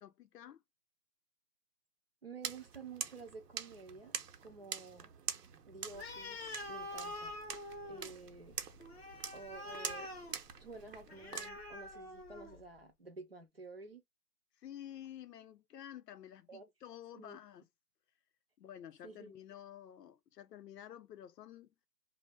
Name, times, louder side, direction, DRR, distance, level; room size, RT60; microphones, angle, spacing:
voice 1, 0.0-0.6 14.6-17.7 18.6-21.7, left 11 dB, 85° left, 0.5 m, -51 dB
voice 2, 2.2-5.1 5.7-6.4 6.7-7.4 7.9-8.6 9.3-10.1 10.6-14.0 16.5-16.7 17.1-17.4 19.0-19.4, right 4 dB, 40° right, 0.4 m, -51 dB
sound 1, 2.4-11.5, right 7 dB, 75° right, 0.7 m, -45 dB
Animal, 5.9-12.7, left 1 dB, 40° left, 0.6 m, -46 dB
2.1 x 2.0 x 3.2 m
hypercardioid pair, 165°, 48 cm